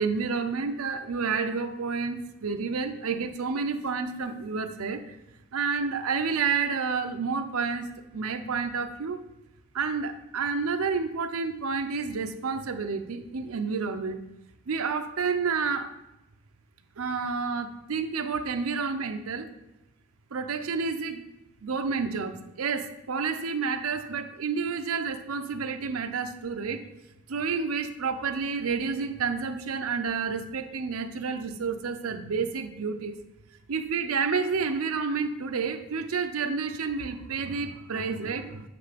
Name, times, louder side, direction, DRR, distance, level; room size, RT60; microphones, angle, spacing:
voice 1, 0.0-5.2 5.5-9.2 9.7-14.2 14.7-15.9 17.0-19.5 20.3-21.2 21.6-26.8 27.3-33.2 33.7-38.7, right 5 dB, 85° right, 7 dB, 0.6 m, -30 dB
7.8 x 3.2 x 5.1 m, 0.95 s
head